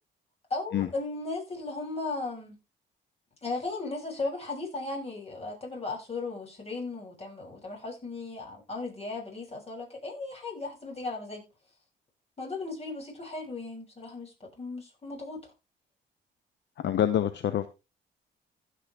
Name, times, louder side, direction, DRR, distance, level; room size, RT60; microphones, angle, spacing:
voice 1, 0.5-2.6 3.4-11.5 12.4-15.5, left 3 dB, 30° left, 7.5 m, -36 dB
voice 2, 16.8-17.7, left 10 dB, 60° left, 0.9 m, -26 dB
15.5 x 6.4 x 3.5 m
cardioid pair, 90°, 20 cm